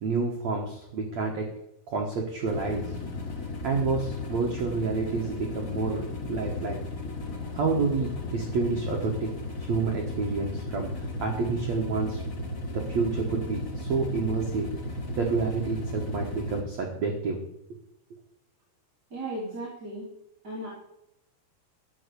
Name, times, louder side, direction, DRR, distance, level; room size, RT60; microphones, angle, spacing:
voice 1, 0.0-1.5 1.9-3.0 3.6-6.8 7.5-9.3 9.6-12.2 12.7-14.7 15.2-17.4, right 4 dB, 60° right, 0 dB, 2.0 m, -29 dB
sound 1, 2.4-16.6, left 2 dB, 80° left, 0.7 m, -35 dB
voice 2, 19.1-20.1 20.4-20.7, right 1 dB, 25° right, -7 dB, 3.2 m, -35 dB
13.0 x 7.2 x 6.9 m, 0.85 s
omnidirectional pair, 4.9 m